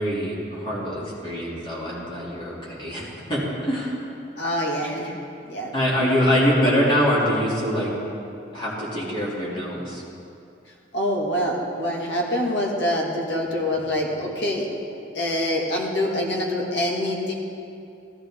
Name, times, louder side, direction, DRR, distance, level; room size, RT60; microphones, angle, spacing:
voice 1, 0.0-4.0 5.7-7.9 8.5-10.0, equal, 25° left, -7 dB, 3.0 m, -24 dB
voice 2, 4.4-5.2 5.5-5.7 10.9-14.7 15.1-17.3, left 1 dB, 75° left, -2 dB, 2.1 m, -25 dB
14.5 x 13.0 x 3.8 m, 2.6 s
head